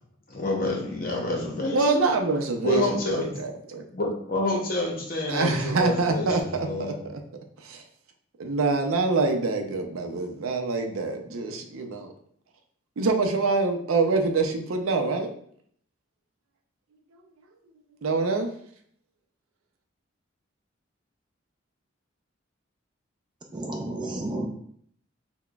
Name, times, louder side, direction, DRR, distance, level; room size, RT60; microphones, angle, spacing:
voice 1, 0.3-2.1 2.6-3.4 3.9-7.0, left 2 dB, 45° left, -1 dB, 0.8 m, -28 dB
voice 2, 1.6-3.9 5.3-7.2 7.6-7.8 8.4-12.1 13.0-15.3 18.0-18.5, right 3 dB, 90° right, 5 dB, 0.5 m, -25 dB
voice 3, 23.5-24.5, right 1 dB, 20° right, 1 dB, 0.4 m, -31 dB
5.7 x 2.1 x 2.3 m, 0.64 s
head